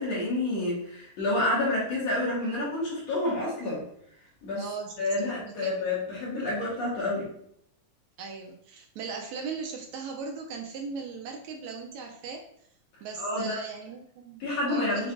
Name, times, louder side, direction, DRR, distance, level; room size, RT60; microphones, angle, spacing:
voice 1, 0.0-3.8 4.4-4.7 5.0-7.3 13.2-13.6 14.4-15.1, left 2 dB, 60° left, -6 dB, 2.5 m, -29 dB
voice 2, 4.6-4.9 5.4-5.7 8.2-12.4 13.0-15.1, right 5 dB, 80° right, 1 dB, 1.8 m, -38 dB
6.0 x 3.2 x 2.5 m, 0.70 s
omnidirectional pair, 3.5 m